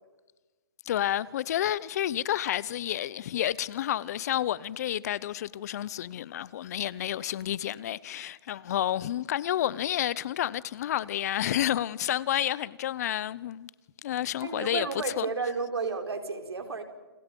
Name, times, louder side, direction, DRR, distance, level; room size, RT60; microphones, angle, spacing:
voice 1, 0.9-13.7 14.0-15.3, left 12 dB, 40° left, 0.7 m, -30 dB
voice 2, 14.4-16.8, right 4 dB, 80° right, 4.6 m, -32 dB
29.5 x 29.0 x 5.4 m
hypercardioid pair, 150°, 13 cm